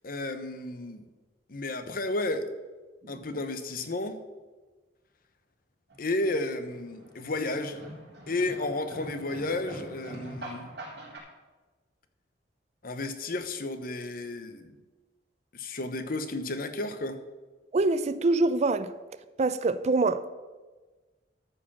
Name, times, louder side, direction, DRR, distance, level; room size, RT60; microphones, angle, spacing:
voice 1, 0.0-1.0 1.5-2.5 3.1-4.2 6.0-7.8 8.3-10.7 12.8-14.7 15.5-17.2, left 2 dB, 55° left, 0.9 m, -32 dB
sound 1, 5.9-11.2, right 1 dB, 65° right, 3.7 m, -44 dB
voice 2, 17.7-18.9 19.4-20.3, right 3 dB, 40° right, 0.4 m, -24 dB
13.0 x 5.0 x 7.3 m
head